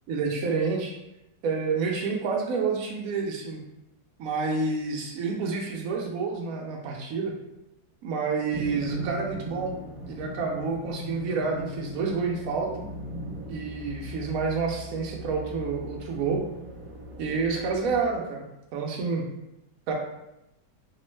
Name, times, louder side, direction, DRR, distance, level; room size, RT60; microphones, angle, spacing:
voice 1, 0.1-1.0 1.4-3.6 4.2-7.3 8.0-9.7 10.1-12.7 13.5-16.4 17.2-19.2 19.9-20.0, right 4 dB, 75° right, 0 dB, 0.8 m, -29 dB
sound 1, 8.5-18.0, equal, 55° right, 1.2 m, -39 dB
4.4 x 2.1 x 3.1 m, 0.89 s
omnidirectional pair, 1.9 m